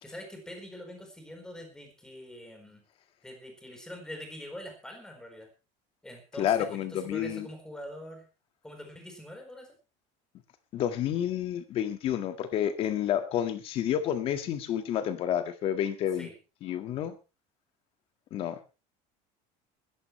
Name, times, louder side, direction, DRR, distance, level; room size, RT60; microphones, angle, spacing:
voice 1, 0.0-2.8 3.2-5.5 6.0-8.3 8.6-9.7 16.2-16.3, left 1 dB, 5° left, 4 dB, 4.2 m, -44 dB
voice 2, 6.4-7.5 10.7-16.3 16.6-17.2 18.3-18.7, left 10 dB, 35° left, 9 dB, 1.7 m, -30 dB
20.0 x 14.5 x 3.2 m, 0.31 s
cardioid pair, 175°, 15 cm